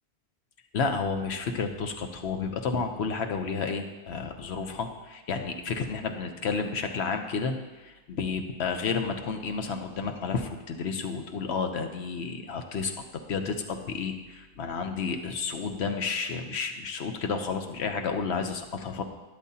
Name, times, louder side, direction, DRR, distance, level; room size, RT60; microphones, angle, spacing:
voice 1, 0.7-12.9 13.3-19.0, left 5 dB, 90° left, 6 dB, 1.1 m, -31 dB
12.0 x 10.5 x 2.8 m, 1.2 s
omnidirectional pair, 1.1 m